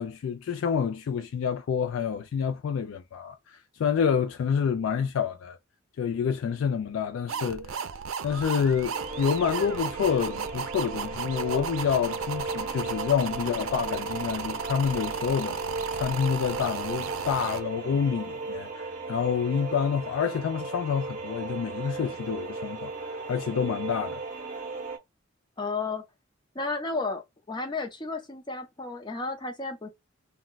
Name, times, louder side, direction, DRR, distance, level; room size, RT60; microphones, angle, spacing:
voice 1, 0.0-5.6 6.0-7.8 8.2-15.6 15.9-24.2, left 7 dB, 75° left, 0.3 m, -28 dB
sound 1, 7.3-17.6, right 6 dB, 90° right, 0.4 m, -35 dB
sound 2, 8.9-25.0, right 3 dB, 40° right, 0.6 m, -36 dB
voice 2, 25.6-26.0 26.5-29.9, left 3 dB, 25° left, 0.6 m, -33 dB
2.3 x 2.1 x 3.8 m
head